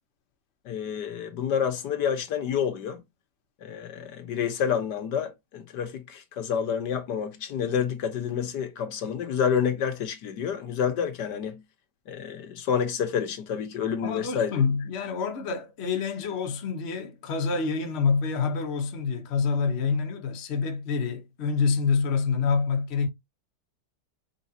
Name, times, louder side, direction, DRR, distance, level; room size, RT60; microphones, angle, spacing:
voice 1, 0.6-3.0 3.6-11.6 12.1-14.5, left 7 dB, 80° left, 1.5 m, -28 dB
voice 2, 14.0-23.1, left 5 dB, 45° left, 1.0 m, -27 dB
4.9 x 4.0 x 2.7 m
omnidirectional pair, 1.8 m